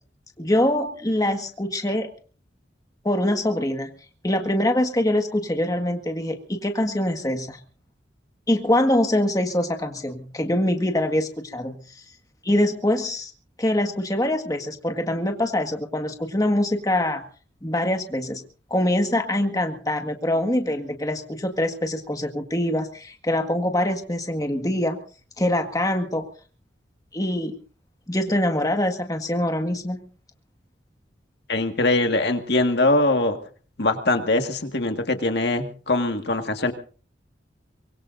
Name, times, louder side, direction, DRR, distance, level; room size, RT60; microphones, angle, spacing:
voice 1, 0.4-2.1 3.0-3.9 4.2-7.6 8.5-11.8 12.4-13.3 13.6-17.2 17.6-18.4 18.7-25.0 25.4-26.3 27.1-27.6 28.1-30.0, left 1 dB, 20° left, 4 dB, 1.7 m, -24 dB
voice 2, 31.5-33.4 33.8-36.7, left 2 dB, 60° left, 5 dB, 1.9 m, -22 dB
24.5 x 22.0 x 2.7 m, 0.41 s
head